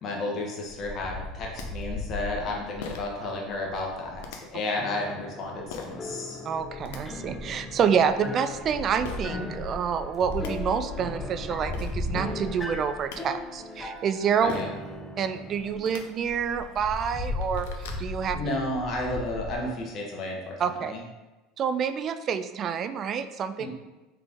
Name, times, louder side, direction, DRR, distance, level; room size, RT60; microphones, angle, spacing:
voice 1, 0.0-6.4 14.3-14.7 18.3-21.0 23.6-23.7, left 2 dB, 45° left, -1 dB, 1.0 m, -32 dB
Wind, 0.7-4.3 5.4-5.9 6.6-13.6 14.2-14.3 14.5-14.6 14.9-15.0 15.3-15.4 15.6-15.8 16.2-19.6, left 2 dB, 5° left, 1.0 m, -37 dB
sound 1, 1.2-1.3 1.6-1.7 2.8-3.2 4.2-4.4 5.7-6.0 6.6-7.0 9.0-9.2 10.0-10.1 10.3-10.5 11.4-11.5 11.7-11.9 12.8-13.2 14.5-14.8 15.7-16.0 16.7-16.8 17.1-18.0, left 6 dB, 80° left, 0.5 m, -39 dB
sound 2, 4.8-15.8, left 2 dB, 20° left, 0.7 m, -39 dB
voice 2, 6.4-14.6 15.2-18.4 20.6-20.9 21.6-23.7, right 7 dB, 45° right, 10 dB, 0.3 m, -28 dB
3.8 x 3.3 x 3.5 m, 1.1 s
hypercardioid pair, 90°, 0 cm